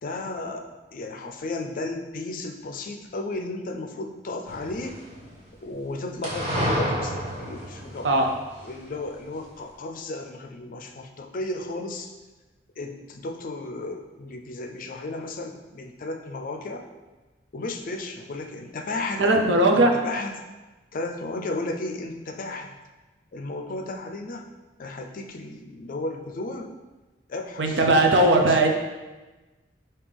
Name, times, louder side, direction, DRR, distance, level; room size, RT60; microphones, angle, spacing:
voice 1, 0.0-5.0 5.6-8.1 8.6-12.1 12.8-16.9 17.5-19.3 19.7-20.4 20.9-22.8 23.3-24.5 24.8-26.8 27.3-28.7, left 2 dB, 50° left, 4 dB, 0.4 m, -34 dB
sound 1, 4.5-5.4 6.2-8.7, equal, 40° right, 1.4 m, -30 dB
voice 2, 19.2-20.0 27.6-28.7, right 2 dB, 85° right, 2 dB, 0.6 m, -18 dB
5.1 x 2.8 x 3.4 m, 1.2 s
head